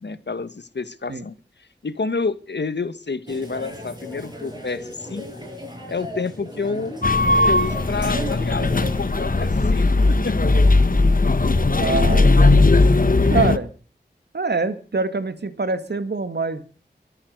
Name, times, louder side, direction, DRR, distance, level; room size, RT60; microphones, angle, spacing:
voice 1, 0.0-1.3 1.8-5.3 5.9-7.0 7.5-10.4, left 4 dB, 75° left, 13 dB, 1.5 m, -29 dB
sound 1, 3.3-9.5, equal, 25° right, 7.1 m, -36 dB
sound 2, 7.0-13.6, left 2 dB, 50° left, 1.2 m, -17 dB
voice 2, 11.8-12.8 13.2-13.7 14.3-16.6, right 3 dB, 70° right, 11 dB, 1.9 m, -25 dB
23.5 x 8.7 x 6.6 m, 0.40 s
wide cardioid pair, 70°, 18 cm